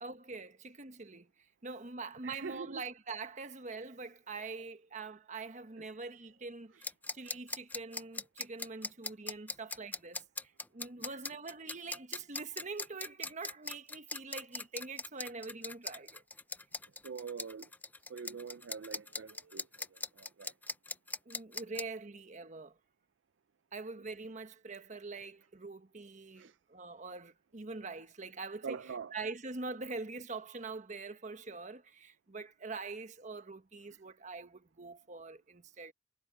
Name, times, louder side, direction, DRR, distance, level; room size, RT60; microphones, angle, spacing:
voice 1, 0.0-1.3 1.6-16.2 21.3-22.7 23.7-28.8 29.1-35.9, right 3 dB, 40° right, 1.2 m, -44 dB
voice 2, 2.2-2.8 5.8-5.9 11.1-11.2 17.0-17.7 18.1-20.5 26.4-26.6 28.6-29.1, right 5 dB, 70° right, 0.5 m, -44 dB
sound 1, 6.8-21.8, left 3 dB, 10° left, 0.5 m, -40 dB
head